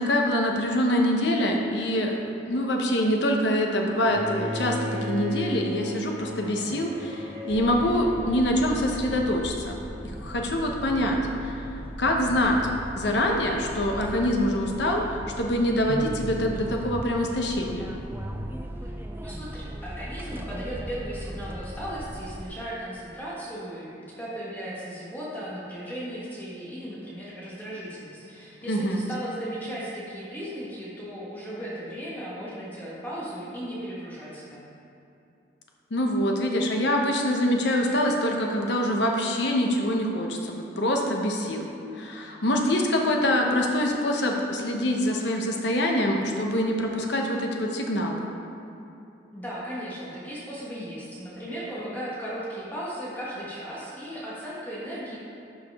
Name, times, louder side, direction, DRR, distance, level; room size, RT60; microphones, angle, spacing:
voice 1, 0.0-9.8 10.2-11.7 12.0-12.6 13.0-15.1 15.4-17.9 28.7-29.0 35.9-41.7 41.9-48.3, left 1 dB, 70° left, 1 dB, 0.8 m, -25 dB
Bowed string instrument, 4.1-10.1, equal, 50° right, 1.4 m, -36 dB
sound 1, 7.5-22.5, right 1 dB, 10° right, 0.3 m, -37 dB
voice 2, 19.2-23.9 24.2-34.6 49.3-55.2, equal, 10° left, -8 dB, 1.4 m, -36 dB
11.5 x 5.0 x 3.4 m, 2.7 s
head